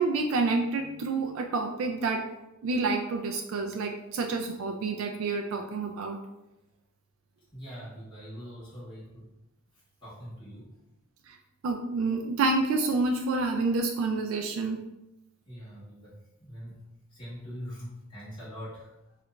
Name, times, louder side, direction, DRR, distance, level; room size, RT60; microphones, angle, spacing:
voice 1, 0.0-2.2 2.6-6.2 11.3-11.4 11.6-14.8, right 3 dB, 75° right, 3 dB, 0.3 m, -28 dB
voice 2, 7.5-9.3 9.7-10.7 15.4-19.2, equal, 25° left, -11 dB, 1.4 m, -43 dB
2.9 x 2.4 x 3.2 m, 0.94 s
head